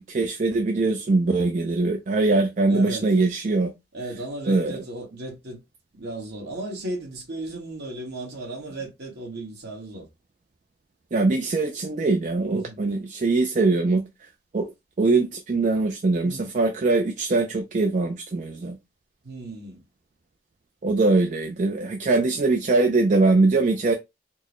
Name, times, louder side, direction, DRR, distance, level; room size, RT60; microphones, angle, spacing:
voice 1, 0.0-3.7 4.5-4.8 11.1-14.0 14.5-14.7 15.0-18.8 20.8-23.9, right 3 dB, 45° right, 0.4 m, -22 dB
voice 2, 2.7-3.1 3.9-5.6 5.9-10.0 12.5-12.8 16.2-16.6 19.2-19.8, right 2 dB, 65° right, 1.6 m, -35 dB
4.4 x 2.1 x 2.9 m
head